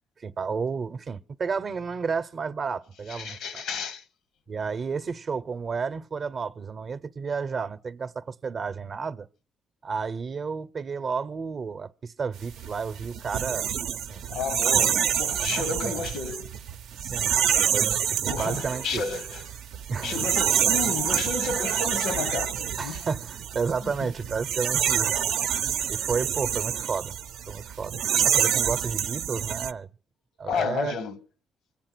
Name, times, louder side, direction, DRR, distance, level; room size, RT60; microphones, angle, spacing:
voice 1, 0.2-3.6 4.5-9.3 9.8-13.7 14.1-14.2 15.4-16.0 17.0-17.3 17.7-19.0 19.9-20.1 22.8-25.3 25.9-27.2 27.5-29.9 30.4-31.0, right 5 dB, 45° right, 0.7 m, -32 dB
voice 2, 3.1-4.0 14.3-16.5 18.3-19.4 20.0-23.1 23.8-24.1 30.4-31.2, left 5 dB, 85° left, 1.0 m, -32 dB
sound 1, 12.4-29.7, right 9 dB, 85° right, 0.6 m, -27 dB
24.0 x 8.6 x 6.0 m
cardioid pair, 90°, 0 cm